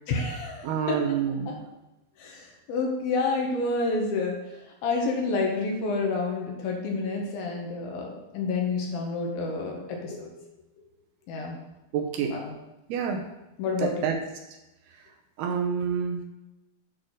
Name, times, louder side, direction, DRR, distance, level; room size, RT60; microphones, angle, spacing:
voice 1, 0.1-1.2 1.5-1.6 2.2-4.4 4.8-10.3 11.3-11.6 12.3-12.5 13.6-14.2, left 3 dB, 70° left, 1 dB, 2.6 m, -29 dB
voice 2, 0.6-1.7 11.9-12.3 12.9-13.2 13.8-14.2 15.4-16.2, right 7 dB, 75° right, 2 dB, 2.7 m, -28 dB
8.0 x 4.2 x 6.2 m, 0.97 s
omnidirectional pair, 4.8 m